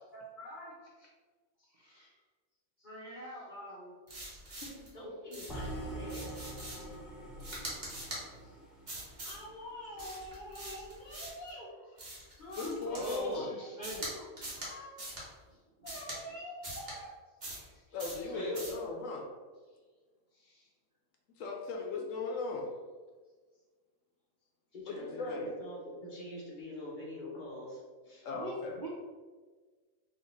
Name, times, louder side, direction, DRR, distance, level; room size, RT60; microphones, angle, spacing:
voice 1, 0.1-0.8 2.8-6.4 9.2-11.7 12.4-12.8 13.4-13.5 13.8-14.9 15.8-17.1 18.2-19.1 24.7-28.3, equal, 35° left, -4 dB, 1.2 m, -46 dB
voice 2, 1.7-2.1 8.4-8.5 12.9-14.1 17.5-18.5 20.3-20.7 28.3-28.9, right 1 dB, 55° right, -3 dB, 0.5 m, -43 dB
sound 1, 4.1-4.9 5.3-5.7 6.1-6.9 7.4-8.2 8.9-9.4 10.0-11.5 12.0-13.3 13.8-14.1 14.4-14.7 15.0-15.2 15.8-16.2 16.6-16.9 17.4-17.7 18.0-18.2 18.5-18.8, right 1 dB, 35° right, 1.3 m, -43 dB
sound 2, 5.5-9.6, right 1 dB, ahead, 0.6 m, -44 dB
voice 3, 12.6-13.5 17.9-19.2 21.4-22.7 24.8-25.5 28.2-28.8, left 3 dB, 70° left, 0 dB, 1.1 m, -37 dB
4.1 x 3.0 x 3.9 m, 1.4 s
omnidirectional pair, 1.5 m